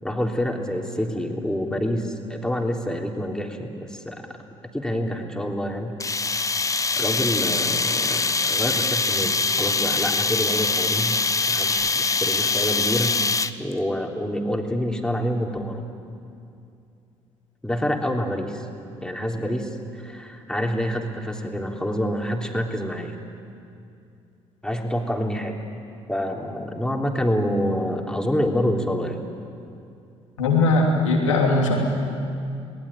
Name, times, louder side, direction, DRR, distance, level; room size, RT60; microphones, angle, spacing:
voice 1, 0.0-4.3 4.7-5.9 7.0-11.2 11.5-13.2 13.6-15.9 17.6-18.7 19.0-23.2 24.6-25.6 26.1-29.2, equal, 5° left, 1 dB, 3.5 m, -27 dB
sound 1, 6.0-13.7, left 4 dB, 20° left, 1.0 m, -23 dB
voice 2, 30.4-31.8, left 2 dB, 85° left, 0 dB, 3.0 m, -19 dB
28.5 x 19.5 x 9.0 m, 2.6 s
figure-of-eight pair, 50°, 16 cm